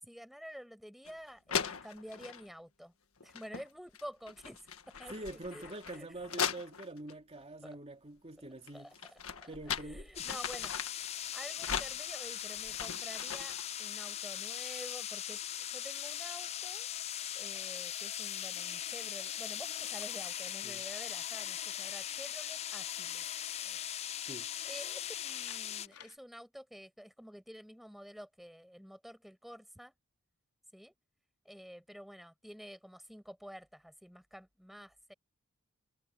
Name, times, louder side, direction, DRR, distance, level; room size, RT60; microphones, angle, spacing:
voice 1, 0.0-2.9 3.2-5.6 5.9-6.1 7.6-7.7 8.4-8.5 8.7-10.7 11.3-16.9 17.3-23.2 23.6-23.8 24.6-29.9 30.7-30.9 31.4-35.1, equal, ahead, 5.9 m, -50 dB
sound 1, 1.1-1.2 1.5-2.5 3.2-3.7 3.9-7.1 8.7-11.1 11.6-13.7, left 7 dB, 65° left, 1.7 m, -39 dB
voice 2, 5.1-8.9 9.5-10.4 20.6-20.8 24.2-24.5, right 2 dB, 30° right, 2.5 m, -45 dB
sound 2, 10.2-25.9, left 11 dB, 30° left, 0.3 m, -40 dB
sound 3, 17.5-18.3 19.6-22.2 24.6-26.2, left 8 dB, 85° left, 4.6 m, -61 dB
head